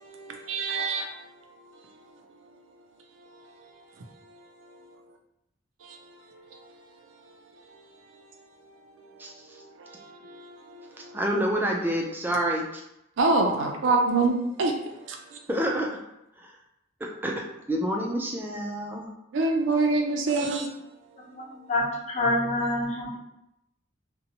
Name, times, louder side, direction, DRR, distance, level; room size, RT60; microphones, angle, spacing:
voice 1, 0.0-1.1 13.2-14.7 15.1-15.2 19.3-20.7, right 3 dB, 80° right, 3 dB, 0.4 m, -24 dB
voice 2, 11.1-12.8 15.5-16.0 16.4-16.5 17.0-19.1, right 1 dB, 10° right, -1 dB, 0.3 m, -28 dB
voice 3, 20.2-20.6 21.7-21.8 22.1-23.2, left 2 dB, 35° left, -5 dB, 0.7 m, -26 dB
2.6 x 2.1 x 2.8 m, 0.84 s
head